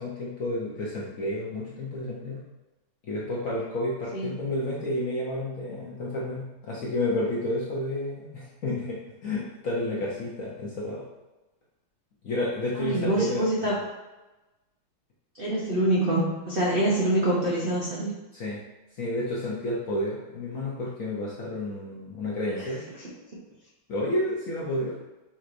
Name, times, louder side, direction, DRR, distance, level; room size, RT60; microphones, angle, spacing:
voice 1, 0.0-2.4 3.0-11.0 12.2-13.7 18.3-18.6 18.9-22.8 23.9-25.1, left 1 dB, 65° left, -5 dB, 0.8 m, -31 dB
voice 2, 12.7-13.8 15.4-18.1 22.6-22.7, right 1 dB, 65° right, -6 dB, 0.5 m, -25 dB
5.4 x 3.1 x 2.5 m, 1.1 s
omnidirectional pair, 2.2 m